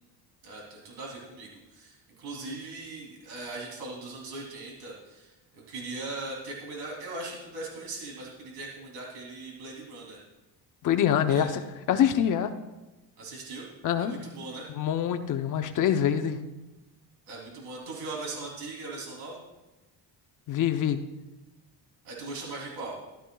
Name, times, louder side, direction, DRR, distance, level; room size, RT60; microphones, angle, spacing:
voice 1, 0.4-10.2 11.3-11.5 13.2-13.7 14.0-14.7 17.3-19.4 22.0-23.0, right 2 dB, 90° right, -2 dB, 3.2 m, -39 dB
voice 2, 10.8-11.6 11.9-12.5 13.8-14.1 14.8-16.4 20.5-21.0, left 9 dB, 50° left, 8 dB, 0.8 m, -25 dB
14.5 x 12.5 x 2.3 m, 1.1 s
cardioid pair, 160°, 39 cm